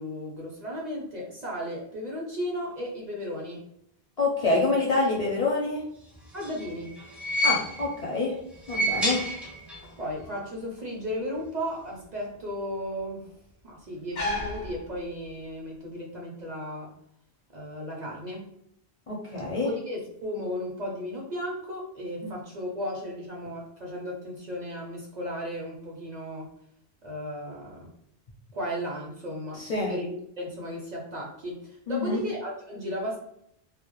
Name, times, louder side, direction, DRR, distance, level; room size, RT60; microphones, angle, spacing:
voice 1, 0.0-3.6 6.3-6.9 10.0-13.2 13.6-16.9 17.5-18.5 19.6-26.5 27.0-27.9 28.5-33.2, equal, 50° right, -2 dB, 0.6 m, -35 dB
voice 2, 4.2-5.8 7.4-8.4 8.7-9.2 19.1-19.7 22.2-22.3 29.5-30.0 31.9-32.3, left 2 dB, 55° left, -4 dB, 0.5 m, -26 dB
sound 1, 6.1-8.0 8.5-9.9 10.2-10.3 11.4-11.5, equal, ahead, 0.4 m, -30 dB
sound 2, 8.5-15.5, left 2 dB, 80° left, 0.8 m, -39 dB
2.1 x 2.0 x 2.9 m, 0.74 s
omnidirectional pair, 1.0 m